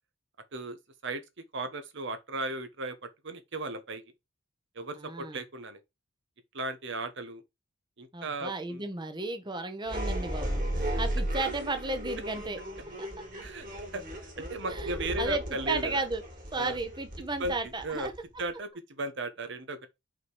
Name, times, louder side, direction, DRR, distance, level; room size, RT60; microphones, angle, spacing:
voice 1, 1.5-3.0 3.2-4.0 4.7-5.8 6.5-7.4 8.0-8.8 13.4-13.7 13.9-16.0 16.5-16.8 17.4-17.5 17.8-18.1 18.4-19.9, right 2 dB, 60° right, 1.1 m, -36 dB
voice 2, 5.0-5.4 8.1-10.6 11.0-12.6 13.0-13.4 14.7-16.2 16.5-18.1, right 3 dB, 20° right, 1.0 m, -34 dB
sound 1, 9.9-18.5, right 1 dB, 40° right, 2.9 m, -35 dB
5.8 x 4.9 x 4.7 m
head